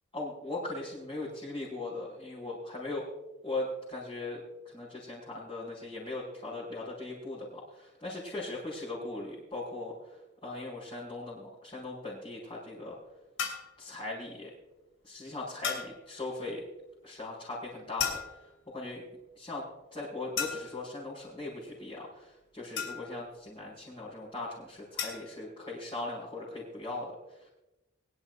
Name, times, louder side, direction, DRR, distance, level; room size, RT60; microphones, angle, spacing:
voice 1, 0.1-3.1 3.4-9.9 10.4-13.0 13.8-14.5 15.0-16.6 17.0-18.4 18.7-19.0 19.4-19.6 19.9-27.5, left 2 dB, 25° left, -9 dB, 5.2 m, -39 dB
sound 1, 13.4-13.8 15.6-16.0 18.0-18.6 20.4-20.9 22.8-23.3 25.0-25.3, left 7 dB, 75° left, 3.1 m, -35 dB
23.0 x 11.5 x 2.5 m, 0.98 s
head